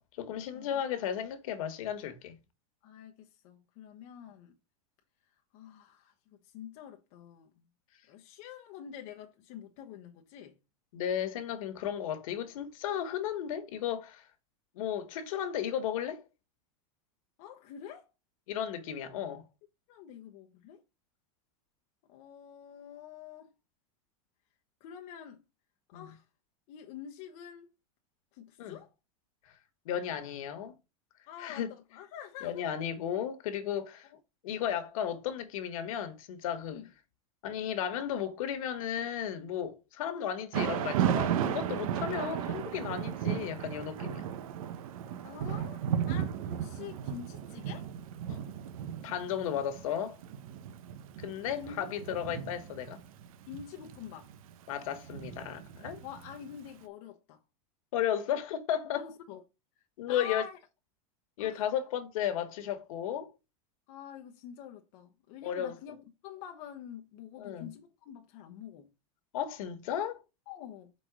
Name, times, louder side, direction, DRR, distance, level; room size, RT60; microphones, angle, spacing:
voice 1, 0.0-2.4 10.9-14.3 14.8-16.2 18.5-19.4 25.9-26.0 28.6-28.8 29.9-30.7 31.4-31.7 32.4-34.1 34.4-36.8 37.4-44.3 48.3-48.4 49.0-50.2 51.2-53.0 54.7-56.0 57.9-59.1 60.0-60.4 61.4-63.3 65.4-65.8 67.4-67.7 69.3-70.2, left 9 dB, 70° left, 1.8 m, -34 dB
voice 2, 0.5-0.8 2.8-4.5 5.3-7.5 8.1-10.5 17.4-18.1 19.9-20.8 22.1-23.5 24.8-25.4 25.9-26.3 26.7-27.7 28.3-28.9 31.3-32.6 34.0-34.2 36.6-36.9 45.2-47.9 51.6-51.9 53.5-54.3 56.0-57.4 58.8-59.4 59.8-60.6 61.4-61.7 63.9-66.0 66.2-68.9 70.5-70.9, left 9 dB, 45° left, 1.0 m, -47 dB
Thunder / Rain, 40.5-56.6, right 9 dB, 70° right, 1.0 m, -35 dB
5.5 x 4.4 x 6.1 m
supercardioid pair, 160°, 18 cm